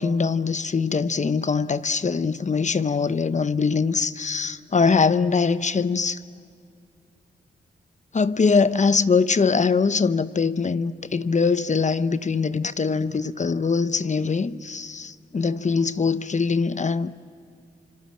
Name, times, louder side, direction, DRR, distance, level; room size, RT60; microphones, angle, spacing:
voice 1, 0.0-6.2 8.1-17.1, left 5 dB, 40° left, 0.9 m, -22 dB
27.0 x 26.0 x 7.6 m
cardioid pair, 50°, 18 cm